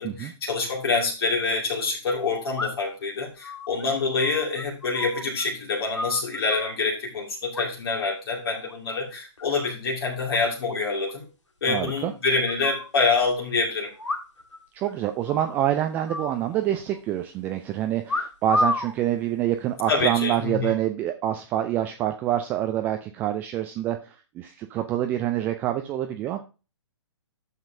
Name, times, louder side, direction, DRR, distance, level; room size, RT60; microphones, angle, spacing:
voice 1, 0.0-11.3 11.6-13.9 19.9-20.7, left 4 dB, 50° left, -1 dB, 2.2 m, -26 dB
sound 1, 0.8-0.9 2.6-3.0 3.4-5.5 5.7-6.8 7.5-8.1 8.4-8.7 9.1-9.7 10.0-10.1 10.3-10.4 10.7-10.8 11.1-11.2 11.9-12.9 14.0-14.6 14.8-14.9 15.3-15.6 16.1-17.0 18.1-18.9 19.7-20.0, left 2 dB, 70° left, 1.7 m, -31 dB
voice 2, 11.7-12.1 14.7-26.4, right 12 dB, 10° right, 6 dB, 0.3 m, -26 dB
12.0 x 7.2 x 2.7 m, 0.32 s
figure-of-eight pair, 125°, 16 cm